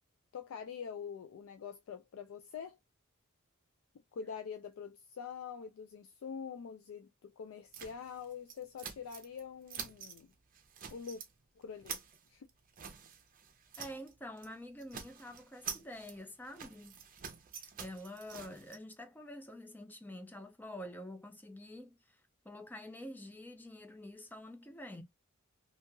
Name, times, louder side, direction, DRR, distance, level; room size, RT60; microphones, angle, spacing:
voice 1, 0.3-2.8 4.1-10.3 10.9-11.2 11.6-12.0 12.3-12.5, left 6 dB, 70° left, 0.3 m, -45 dB
sound 1, 7.7-9.4 9.7-10.2 10.5-11.3 11.6-14.1 14.4-14.5 14.8-18.8, right 7 dB, 40° right, 0.6 m, -47 dB
voice 2, 13.8-16.9 17.8-25.0, left 1 dB, 10° left, 0.5 m, -47 dB
2.9 x 2.7 x 2.2 m
head